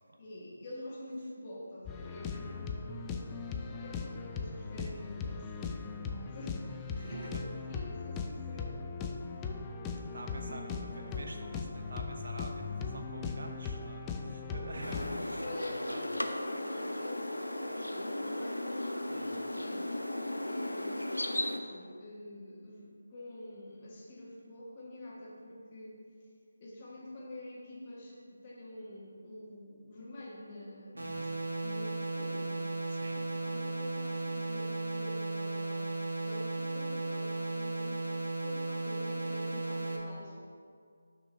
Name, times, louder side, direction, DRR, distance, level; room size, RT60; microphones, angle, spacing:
voice 1, 0.2-3.2 3.8-9.0 10.1-10.9 15.4-20.1 20.5-26.0 26.6-31.2 31.6-32.7 33.1-40.5, left 1 dB, 30° left, -6 dB, 1.6 m, -46 dB
sound 1, 1.9-15.2, left 4 dB, 15° left, 0.3 m, -39 dB
voice 2, 2.3-2.6 6.9-7.4 10.1-16.1 19.1-19.3 30.9-31.3 32.9-33.2, right 2 dB, 60° right, 3 dB, 0.8 m, -47 dB
sound 2, 14.8-21.6, left 1 dB, 90° left, 0.6 m, -36 dB
sound 3, 31.0-40.0, right 2 dB, 80° right, 1.2 m, -35 dB
6.2 x 3.7 x 5.6 m, 2.2 s
figure-of-eight pair, 155°, 0 cm